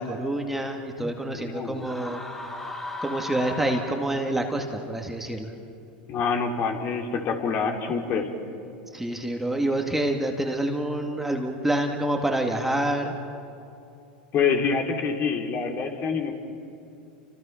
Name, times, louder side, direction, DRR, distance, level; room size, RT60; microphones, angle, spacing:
voice 1, 0.0-2.2 3.0-5.5 8.9-13.1, right 1 dB, 5° right, 2 dB, 2.2 m, -27 dB
voice 2, 0.9-1.9 6.1-8.3 14.3-16.3, left 5 dB, 40° left, 3 dB, 3.3 m, -26 dB
sound 1, 1.8-4.4, left 2 dB, 10° left, 4.7 m, -36 dB
30.0 x 26.0 x 5.9 m, 2.6 s
hypercardioid pair, 100°, 5 cm